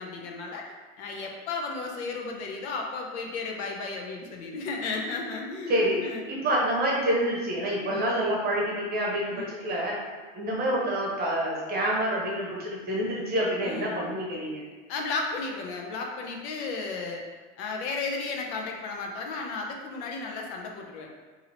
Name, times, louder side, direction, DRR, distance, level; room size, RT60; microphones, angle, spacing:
voice 1, 0.0-6.2 7.9-8.0 9.3-9.5 13.6-14.1 14.9-17.2 17.6-21.1, left 4 dB, 70° left, 1 dB, 0.7 m, -34 dB
voice 2, 5.7-6.0 6.3-9.9 10.3-14.6, equal, 25° right, -3 dB, 0.9 m, -27 dB
2.8 x 2.7 x 4.0 m, 1.3 s
supercardioid pair, 135°, 35 cm